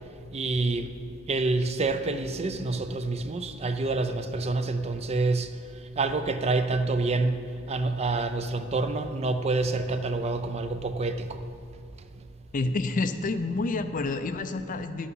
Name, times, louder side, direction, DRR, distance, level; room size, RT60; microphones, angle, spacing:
voice 1, 0.3-0.9 1.3-11.4 12.2-12.3, right 3 dB, 30° right, 0.5 m, -27 dB
voice 2, 12.5-15.1, left 3 dB, 40° left, 0.5 m, -29 dB
11.0 x 8.4 x 5.5 m
head